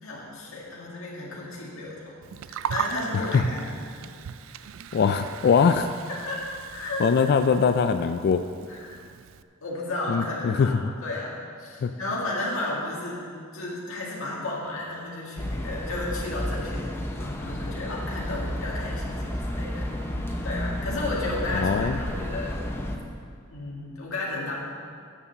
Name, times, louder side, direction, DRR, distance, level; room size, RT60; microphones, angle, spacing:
voice 1, 0.0-4.0 6.3-6.4 6.7-7.3 8.7-9.0 9.6-19.9 20.4-22.6 23.5-24.6, left 2 dB, 75° left, -5 dB, 1.9 m, -33 dB
Gurgling, 2.2-9.4, right 8 dB, 70° right, 0.3 m, -38 dB
voice 2, 4.9-5.9 7.0-8.4 10.1-10.7 11.8-11.9 21.6-22.0, left 6 dB, 50° left, 9 dB, 0.3 m, -22 dB
sound 1, 15.4-23.0, equal, 10° left, 0.7 m, -31 dB
Bowed string instrument, 19.0-23.1, left 2 dB, 20° right, 1.2 m, -44 dB
8.7 x 6.9 x 6.8 m, 2.2 s
head